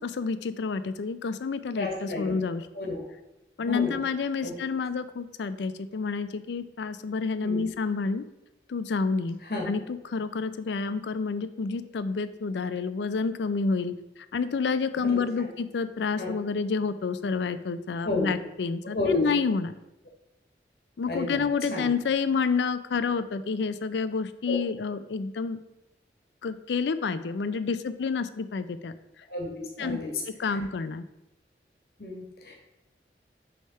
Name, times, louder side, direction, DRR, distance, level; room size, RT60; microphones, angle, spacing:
voice 1, 0.0-2.6 3.6-8.2 8.7-9.4 9.7-19.7 21.0-25.6 26.4-28.9 29.8-30.0 30.3-31.0, left 4 dB, 85° left, 13 dB, 0.4 m, -29 dB
voice 2, 1.8-2.4 2.7-3.0 3.6-4.0 4.4-4.6 7.4-7.7 9.5-9.6 16.2-16.3 18.0-18.3 18.9-19.3 21.1-21.4 21.7-21.9 24.5-24.6 29.3-30.1 32.0-32.6, left 2 dB, 60° left, 0 dB, 1.3 m, -31 dB
6.4 x 3.4 x 5.5 m, 0.92 s
head